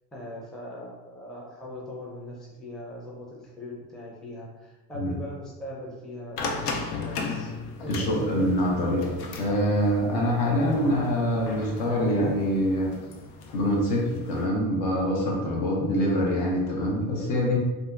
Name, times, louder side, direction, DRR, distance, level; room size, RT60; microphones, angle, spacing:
voice 1, 0.1-6.6 7.0-7.5 7.8-8.5, left 1 dB, ahead, -5 dB, 0.4 m, -40 dB
sound 1, 6.4-14.5, left 4 dB, 90° left, 0.5 m, -36 dB
voice 2, 7.9-12.9 13.5-17.6, equal, 65° left, -3 dB, 1.0 m, -25 dB
2.7 x 2.4 x 2.4 m, 1.2 s
supercardioid pair, 100°, 44 cm